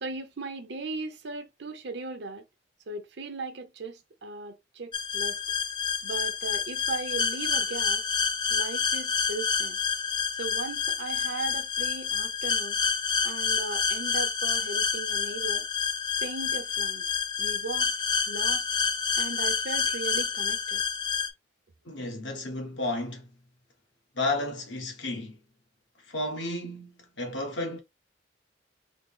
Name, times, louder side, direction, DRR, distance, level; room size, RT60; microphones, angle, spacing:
voice 1, 0.0-2.4 2.9-5.4 6.0-8.0 8.5-9.8 10.4-12.8 13.2-15.7 16.2-17.0 17.4-17.9 18.3-18.6 19.2-20.8, right 3 dB, 60° right, 0.7 m, -37 dB
sound 1, 4.9-21.3, left 6 dB, 25° left, 0.4 m, -28 dB
voice 2, 21.8-23.3 24.1-25.4 26.0-27.8, left 2 dB, 70° left, 1.1 m, -32 dB
3.5 x 2.0 x 3.6 m
head